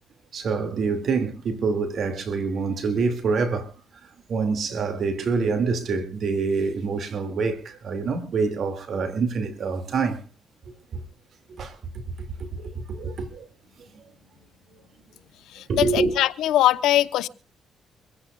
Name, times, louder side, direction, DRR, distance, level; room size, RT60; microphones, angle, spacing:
voice 1, 0.3-3.7 4.0-10.2 10.9-11.0 11.5-13.5 13.9-14.0 15.7-16.1, right 4 dB, 60° right, 2.4 m, -26 dB
voice 2, 15.5-17.3, left 13 dB, 85° left, 1.0 m, -21 dB
25.0 x 16.0 x 2.4 m
cardioid pair, 90°, 0 cm